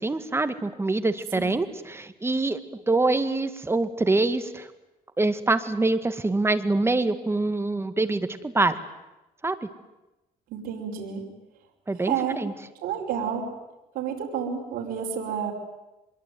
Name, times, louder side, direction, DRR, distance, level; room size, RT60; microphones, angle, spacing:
voice 1, 0.0-2.6 2.9-4.7 5.2-8.8 9.4-9.7 11.9-12.5, right 2 dB, 15° right, 10 dB, 2.0 m, -25 dB
voice 2, 10.5-11.2 12.0-12.4 12.8-13.4 13.9-15.5, right 8 dB, 80° right, 0 dB, 4.9 m, -30 dB
24.5 x 22.0 x 9.5 m, 1.0 s
cardioid pair, 105°, 15 cm